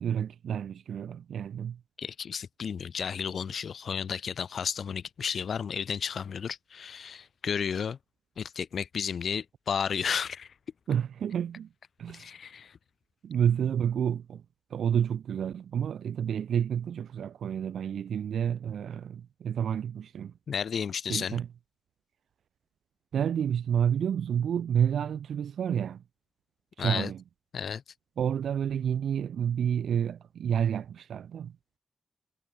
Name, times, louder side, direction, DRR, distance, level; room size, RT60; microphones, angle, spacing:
voice 1, 0.0-1.8 10.9-11.7 12.0-12.3 13.2-14.4 14.7-20.3 21.1-21.5 23.1-26.0 26.8-27.2 28.2-31.6, right 8 dB, 90° right, 1.1 m, -29 dB
voice 2, 2.0-8.0 8.4-10.5 12.1-12.8 20.5-21.4 26.8-27.1 27.5-27.8, left 7 dB, 75° left, 2.5 m, -33 dB
cardioid pair, 70°, 0 cm